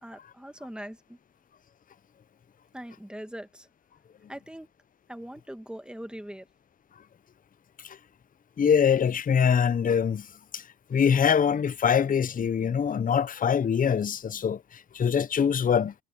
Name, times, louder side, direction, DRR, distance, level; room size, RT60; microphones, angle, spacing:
voice 1, 0.0-1.2 2.7-3.7 4.3-4.7 5.1-6.5, equal, 5° right, 2.0 m, -41 dB
voice 2, 8.6-10.3 10.5-10.6 10.9-15.9, left 7 dB, 30° left, 0.6 m, -24 dB
cardioid pair, 90°, 30 cm